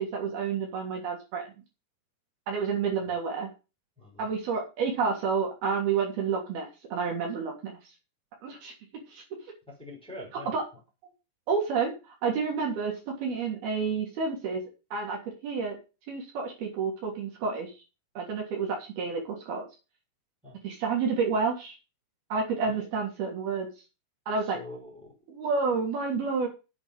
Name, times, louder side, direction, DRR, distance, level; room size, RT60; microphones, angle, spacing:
voice 1, 0.0-1.5 2.5-3.5 4.2-7.8 8.4-8.7 9.1-9.2 10.5-10.6 11.5-12.9 13.2-14.6 14.9-15.8 16.1-17.7 18.2-19.6 20.6-21.8 22.3-23.7 24.3-24.6 25.3-26.5, right 5 dB, 60° right, 0 dB, 4.8 m, -29 dB
voice 2, 4.0-4.3 9.7-10.6 20.4-20.5 22.7-22.9 24.4-25.1, left 1 dB, ahead, -2 dB, 5.6 m, -44 dB
8.5 x 8.4 x 7.5 m, 0.30 s
omnidirectional pair, 4.9 m